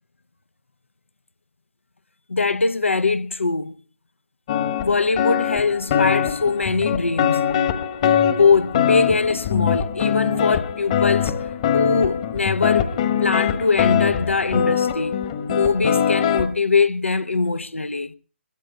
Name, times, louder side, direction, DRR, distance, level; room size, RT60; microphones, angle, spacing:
voice 1, 2.3-3.7 4.8-7.4 8.0-11.3 11.7-18.1, left 4 dB, 75° left, 0.8 m, -22 dB
sound 1, 4.5-16.5, left 9 dB, 30° left, 1.3 m, -22 dB
24.0 x 21.5 x 2.3 m
figure-of-eight pair, 140°, 7 cm